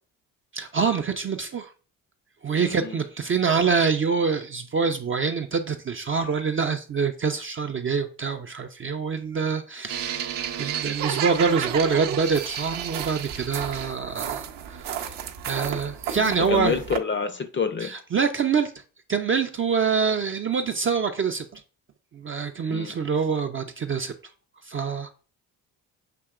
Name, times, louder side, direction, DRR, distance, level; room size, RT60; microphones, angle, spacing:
voice 1, 0.5-1.7 2.4-10.3 10.6-14.4 15.0-15.1 15.5-16.7 17.8-18.7 19.1-21.6 22.1-24.1 24.7-25.1, right 5 dB, 30° right, 0.4 m, -25 dB
voice 2, 2.7-3.0 16.2-17.9 22.7-22.9, left 5 dB, 25° left, 0.5 m, -28 dB
sound 1, 9.9-17.0, right 9 dB, 65° right, 0.7 m, -32 dB
6.7 x 2.8 x 2.3 m
supercardioid pair, 60°, 46 cm